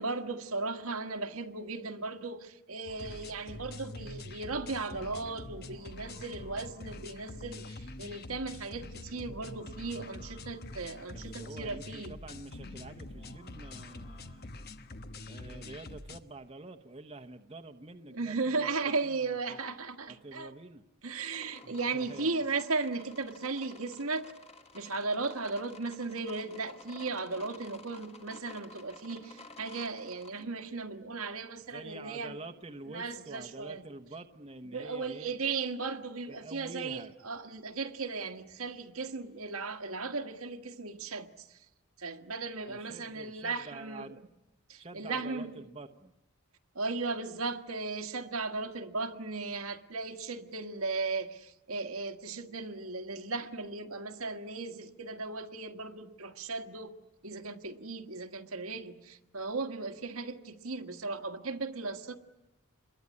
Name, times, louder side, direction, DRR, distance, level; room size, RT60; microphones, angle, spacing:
voice 1, 0.0-12.1 18.1-20.5 21.0-24.2 24.7-32.4 32.9-33.8 34.7-41.5 42.0-44.1 44.7-45.5 46.7-56.9 57.2-62.2, right 3 dB, 80° right, 1.6 m, -36 dB
sound 1, 2.9-16.2, left 2 dB, 45° left, 1.2 m, -45 dB
voice 2, 11.1-14.5 15.2-18.7 19.0-19.6 20.1-20.8 21.6-22.4 31.7-35.3 36.3-37.1 42.7-44.2 44.8-46.1, right 2 dB, 25° right, 1.0 m, -47 dB
sound 2, 21.3-30.4, left 3 dB, 30° left, 2.3 m, -52 dB
27.5 x 22.0 x 9.7 m
head